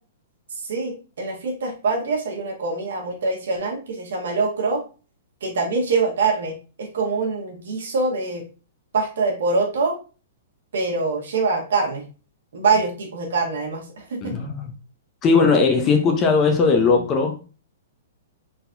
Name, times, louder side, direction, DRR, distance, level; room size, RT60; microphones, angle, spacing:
voice 1, 0.6-4.8 5.4-8.4 8.9-10.0 10.7-12.0 12.5-14.4, right 4 dB, 80° right, 0 dB, 1.7 m, -24 dB
voice 2, 14.2-14.7 15.2-17.4, left 4 dB, 25° left, 4 dB, 0.8 m, -18 dB
4.1 x 4.1 x 2.6 m, 0.35 s
hypercardioid pair, 150°, 0 cm